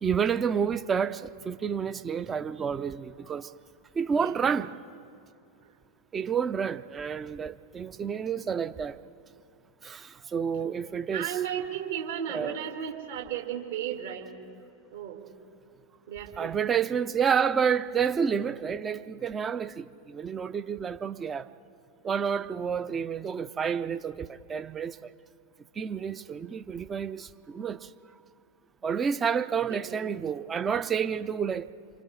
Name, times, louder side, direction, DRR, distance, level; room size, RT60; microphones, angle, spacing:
voice 1, 0.0-3.5 3.9-4.7 6.1-9.0 9.8-11.4 12.3-12.6 16.4-21.5 22.0-25.1 25.8-27.9 28.8-31.7, right 7 dB, 20° right, 0.6 m, -29 dB
voice 2, 11.1-14.3 14.9-15.2 16.1-16.6 29.7-29.8, right 9 dB, 55° right, 2.6 m, -34 dB
30.0 x 24.5 x 3.7 m
figure-of-eight pair, 90°, 0 cm